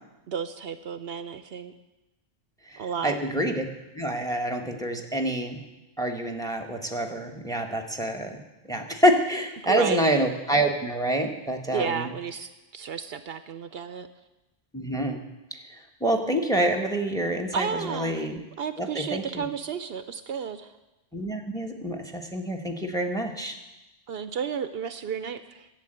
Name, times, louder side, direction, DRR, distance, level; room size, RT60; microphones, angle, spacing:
voice 1, 0.3-1.7 2.8-3.2 9.6-10.0 11.7-14.1 17.5-18.2 18.6-20.7 24.1-25.7, right 7 dB, 70° right, 11 dB, 0.8 m, -32 dB
voice 2, 2.7-3.6 3.9-5.6 6.0-8.4 8.7-12.1 14.7-15.2 16.0-18.4 18.8-19.5 21.1-23.6, right 1 dB, 5° left, 5 dB, 1.2 m, -27 dB
12.0 x 7.4 x 9.0 m, 1.0 s
omnidirectional pair, 1.1 m